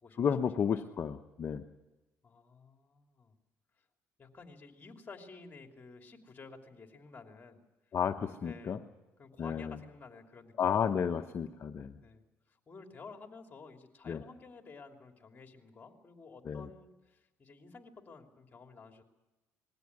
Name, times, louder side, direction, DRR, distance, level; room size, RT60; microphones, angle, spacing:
voice 1, 0.2-1.6 7.9-8.8 9.4-9.8 10.6-12.0 14.1-14.2 16.4-16.6, left 7 dB, 45° left, 6 dB, 0.9 m, -32 dB
voice 2, 2.2-3.4 4.2-7.6 8.4-8.8 9.2-11.0 12.0-19.0, left 4 dB, 30° left, 4 dB, 3.0 m, -52 dB
20.5 x 16.0 x 9.7 m, 1.1 s
cardioid pair, 95°, 6 cm